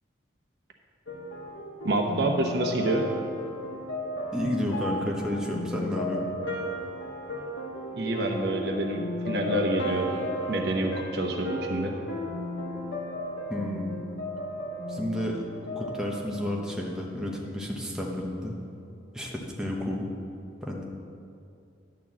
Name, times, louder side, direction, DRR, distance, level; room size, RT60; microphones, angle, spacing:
sound 1, 1.1-17.1, equal, 90° left, 1.4 m, -35 dB
voice 1, 1.8-3.0 7.9-10.1 10.5-12.0, right 1 dB, 60° right, 2 dB, 0.9 m, -27 dB
voice 2, 4.3-6.3 13.5-14.0 14.9-15.4 15.7-18.5 19.1-20.1 20.6-20.8, left 1 dB, 5° right, -2 dB, 0.9 m, -31 dB
10.5 x 4.5 x 7.3 m, 2.6 s
head